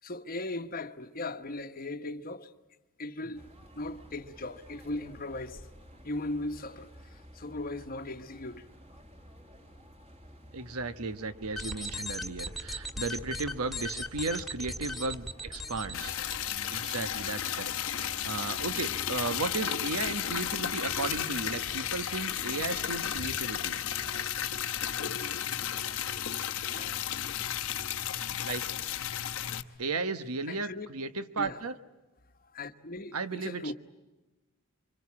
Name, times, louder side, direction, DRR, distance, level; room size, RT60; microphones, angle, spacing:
voice 1, 0.0-2.5 3.0-3.5 3.8-5.7 6.0-8.7 26.6-27.1 30.5-30.9 31.4-31.6 32.4-33.7, left 2 dB, 40° left, 1.1 m, -38 dB
sound 1, 3.3-22.2, equal, 25° right, 2.1 m, -53 dB
voice 2, 10.5-16.1 16.7-23.8 28.4-28.6 29.8-31.8 33.1-33.7, right 3 dB, 75° right, 1.2 m, -35 dB
sound 2, 11.4-16.5, left 1 dB, ahead, 1.8 m, -38 dB
Liquid, 15.9-29.6, left 10 dB, 65° left, 1.0 m, -33 dB
27.0 x 25.5 x 8.6 m
head